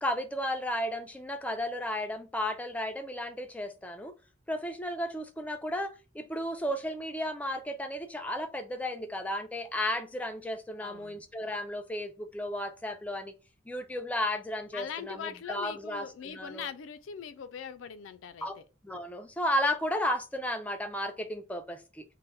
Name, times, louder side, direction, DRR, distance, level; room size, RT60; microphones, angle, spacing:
voice 1, 0.0-4.1 4.5-13.3 13.7-16.7 18.4-18.5 18.8-22.0, left 1 dB, 10° left, 0.3 m, -34 dB
voice 2, 10.8-11.2 14.7-18.7, left 7 dB, 85° left, 0.3 m, -41 dB
2.2 x 2.1 x 3.8 m
head